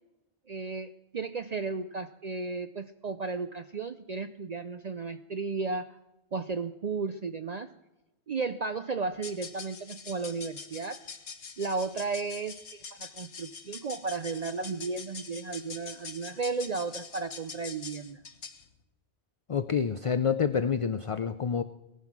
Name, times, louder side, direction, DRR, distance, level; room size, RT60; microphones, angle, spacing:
voice 1, 0.5-6.0 6.3-7.7 8.3-11.0 11.6-18.2, right 4 dB, 45° right, 10 dB, 0.6 m, -34 dB
sound 1, 9.1-18.7, left 5 dB, 85° left, 1.5 m, -44 dB
voice 2, 19.5-21.6, left 6 dB, 45° left, 12 dB, 0.4 m, -28 dB
18.0 x 11.0 x 6.0 m, 0.99 s
omnidirectional pair, 1.1 m